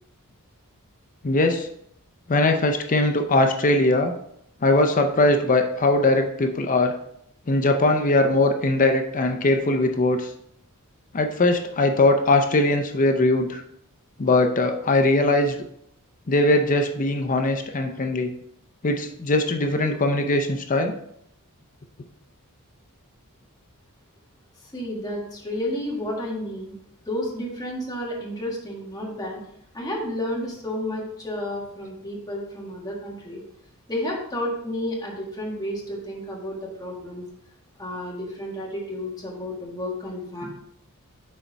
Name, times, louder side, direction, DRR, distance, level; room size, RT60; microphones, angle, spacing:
voice 1, 1.2-1.7 2.3-4.1 4.6-6.9 7.5-10.3 11.1-13.6 14.2-15.6 16.3-18.3 18.8-20.9, left 2 dB, 35° left, 5 dB, 0.6 m, -20 dB
voice 2, 24.6-26.7 27.0-29.4 29.7-33.4 33.9-37.2 37.8-40.5, left 1 dB, 20° left, -3 dB, 1.7 m, -31 dB
6.4 x 4.5 x 4.0 m, 0.71 s
head